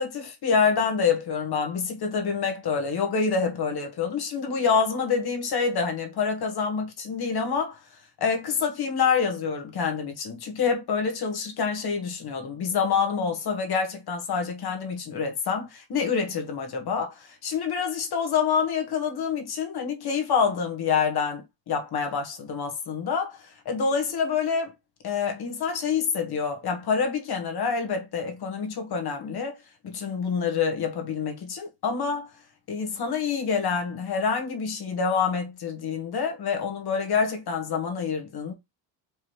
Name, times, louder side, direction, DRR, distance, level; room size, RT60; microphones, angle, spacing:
voice 1, 0.0-7.8 8.2-23.4 23.6-24.7 25.0-29.6 29.8-32.3 32.7-38.5, left 6 dB, 55° left, 1.5 m, -27 dB
4.9 x 3.2 x 3.1 m
cardioid pair, 95°, 47 cm